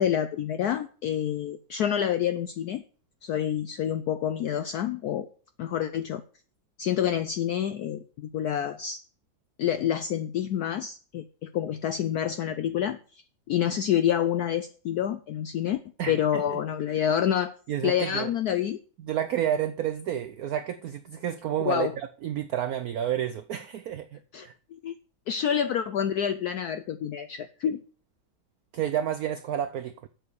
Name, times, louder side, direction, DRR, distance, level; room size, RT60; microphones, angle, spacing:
voice 1, 0.0-2.8 3.2-5.3 5.6-6.2 6.8-9.0 9.6-13.0 13.5-15.8 16.1-17.5 17.8-18.8 21.6-21.9 24.3-24.9 25.3-27.8, left 9 dB, 80° left, 0.8 m, -28 dB
voice 2, 16.0-16.6 17.7-18.3 19.0-24.5 28.7-30.1, right 10 dB, 85° right, 0.8 m, -30 dB
7.8 x 6.4 x 6.9 m
omnidirectional pair, 2.2 m